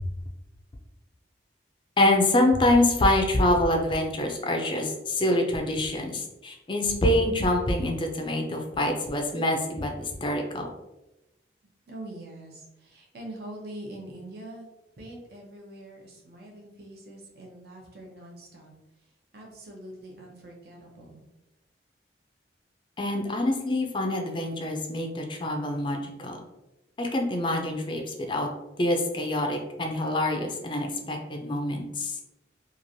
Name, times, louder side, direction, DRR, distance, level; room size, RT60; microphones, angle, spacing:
voice 1, 2.0-10.7 23.0-26.4 27.0-28.5 28.8-32.2, left 1 dB, 25° left, 3 dB, 0.4 m, -25 dB
voice 2, 11.9-14.7 15.0-18.7 19.3-21.2, right 1 dB, 55° right, -1 dB, 0.7 m, -43 dB
3.0 x 2.4 x 2.6 m, 0.98 s
head